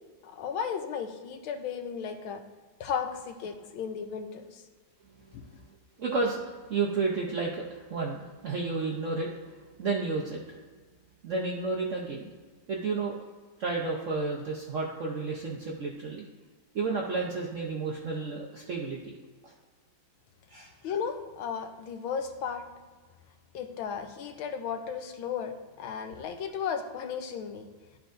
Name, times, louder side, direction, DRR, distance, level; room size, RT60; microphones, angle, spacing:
voice 1, 0.2-2.4 2.8-4.6 5.3-5.4 20.8-22.6 23.5-27.7, left 7 dB, 85° left, 5 dB, 1.6 m, -35 dB
voice 2, 6.0-9.3 9.8-10.4 11.2-12.3 12.7-13.2 13.6-16.3 16.7-19.1 19.4-19.5 20.5-20.7, right 4 dB, 65° right, -1 dB, 0.7 m, -31 dB
12.0 x 4.6 x 2.5 m, 1.4 s
omnidirectional pair, 2.2 m